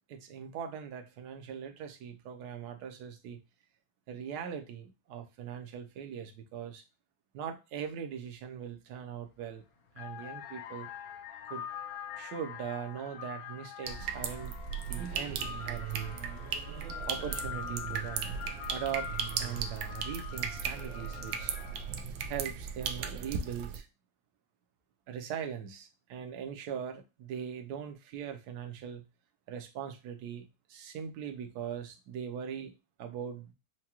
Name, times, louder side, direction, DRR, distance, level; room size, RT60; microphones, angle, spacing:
voice 1, 0.1-3.4 4.1-6.8 7.3-9.6 10.0-10.9 11.5-11.7 12.1-14.5 14.9-16.2 17.1-18.4 18.7-19.1 19.4-21.6 22.3-23.9 25.1-29.0 29.5-32.7 33.0-33.5, right 8 dB, 70° right, 6 dB, 1.1 m, -40 dB
sound 1, 9.2-9.5 9.9-22.0, left 9 dB, 60° left, 1.0 m, -44 dB
sound 2, 13.9-23.8, right 7 dB, 90° right, 1.3 m, -37 dB
4.7 x 2.2 x 2.9 m, 0.27 s
omnidirectional pair, 2.0 m